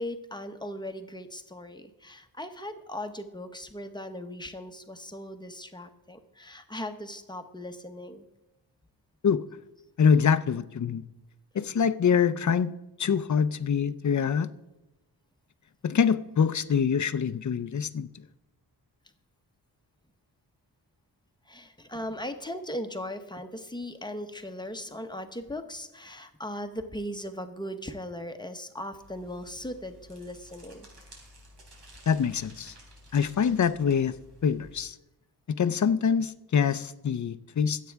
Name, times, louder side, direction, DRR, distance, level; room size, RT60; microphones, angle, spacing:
voice 1, 0.0-8.2 21.5-30.9, left 1 dB, 10° left, 7 dB, 0.9 m, -38 dB
voice 2, 10.0-11.0 11.5-12.7 13.0-14.5 15.8-18.1 32.1-32.7 33.1-34.1 34.4-35.0 35.6-37.8, left 7 dB, 45° left, 13 dB, 0.6 m, -25 dB
sound 1, 28.9-34.8, equal, 90° right, 3.8 m, -52 dB
24.0 x 8.4 x 3.5 m, 1.0 s
wide cardioid pair, 155°, 40 cm